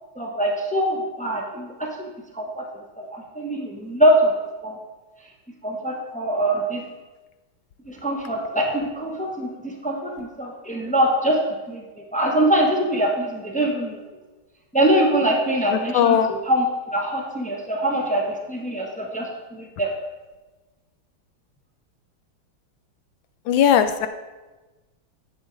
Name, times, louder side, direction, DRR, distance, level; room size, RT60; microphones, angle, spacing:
voice 1, 0.2-2.1 2.3-2.7 3.0-4.3 4.6-4.8 5.6-6.8 7.9-11.4 11.7-11.8 12.1-14.0 14.7-16.7 16.9-19.9, right 1 dB, 10° left, -1 dB, 0.3 m, -23 dB
voice 2, 15.7-16.3 23.5-24.1, left 9 dB, 75° left, 9 dB, 1.2 m, -18 dB
10.5 x 7.3 x 4.0 m, 1.2 s
omnidirectional pair, 2.3 m